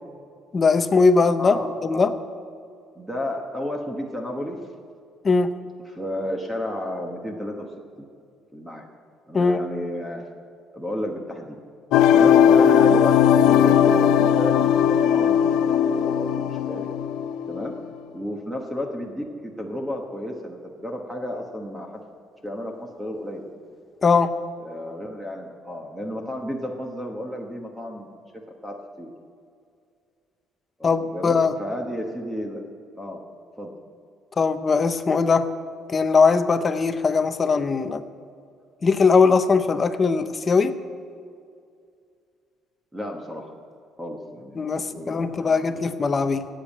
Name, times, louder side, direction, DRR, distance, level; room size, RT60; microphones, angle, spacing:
voice 1, 0.5-2.1 5.2-5.5 9.3-9.6 24.0-24.4 30.8-31.5 34.4-35.5 35.9-38.0 38.8-40.8 44.6-46.5, left 4 dB, 20° left, 10 dB, 0.6 m, -20 dB
voice 2, 1.4-2.1 2.9-4.6 5.9-7.7 8.5-8.9 9.3-10.2 10.7-11.6 12.1-16.9 17.5-17.7 18.1-22.0 22.4-23.4 24.6-28.2 28.6-29.1 30.8-32.6 33.0-33.2 33.6-33.7 42.9-43.5 44.0-45.9, left 1 dB, 5° right, 2 dB, 1.2 m, -32 dB
sound 1, 11.9-17.8, left 8 dB, 75° left, 0.7 m, -18 dB
17.0 x 9.0 x 8.5 m, 2.3 s
cardioid pair, 175°, 0 cm